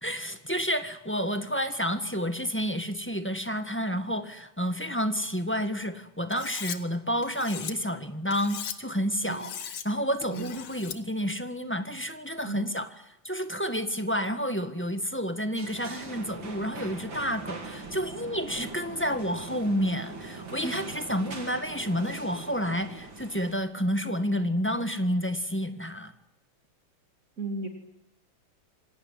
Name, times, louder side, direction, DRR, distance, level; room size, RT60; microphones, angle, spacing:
voice 1, 0.0-9.5 9.8-12.9 13.2-26.1, equal, 5° left, 8 dB, 1.4 m, -30 dB
Cutlery silverware, 6.3-6.8 7.2-7.7 8.3-8.8 9.3-9.9 10.2-11.0, left 8 dB, 80° left, 2.2 m, -38 dB
sound 1, 15.6-23.5, right 3 dB, 65° right, 3.8 m, -41 dB
voice 2, 27.4-27.7, right 3 dB, 40° right, 3 dB, 3.3 m, -34 dB
27.0 x 18.0 x 9.7 m, 0.87 s
omnidirectional pair, 2.3 m